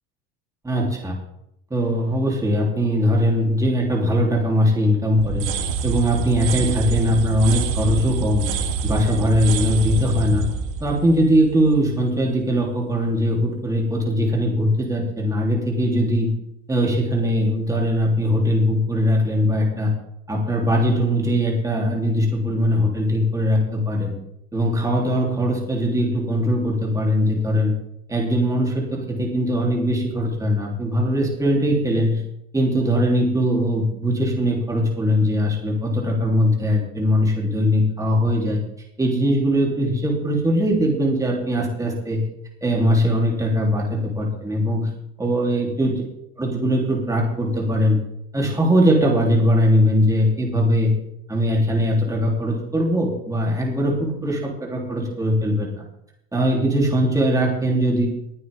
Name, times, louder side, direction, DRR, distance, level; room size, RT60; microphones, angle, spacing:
voice 1, 0.6-1.2 1.7-5.5 5.8-8.4 8.8-10.5 10.8-16.3 16.7-19.9 20.3-24.1 24.5-27.7 28.1-32.2 32.5-38.6 39.0-42.2 42.6-44.9 45.2-46.0 46.4-48.0 48.3-50.9 51.3-55.7 56.3-58.1, equal, 10° right, -2 dB, 3.3 m, -20 dB
sound 1, 5.2-12.0, right 4 dB, 75° right, 1.8 m, -26 dB
20.5 x 9.5 x 3.6 m, 0.80 s
cardioid pair, 130°, 32 cm